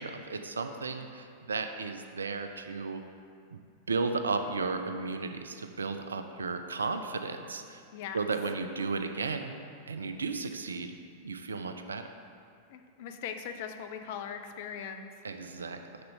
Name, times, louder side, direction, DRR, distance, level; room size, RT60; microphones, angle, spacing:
voice 1, 0.0-3.0 3.5-3.6 3.9-7.8 8.1-9.5 9.9-10.9 11.2-12.1 15.2-16.0, right 4 dB, 75° right, 7 dB, 0.4 m, -34 dB
voice 2, 12.7-15.1, left 8 dB, 50° left, 7 dB, 0.4 m, -40 dB
5.4 x 3.9 x 5.4 m, 2.4 s
figure-of-eight pair, 90°, 0 cm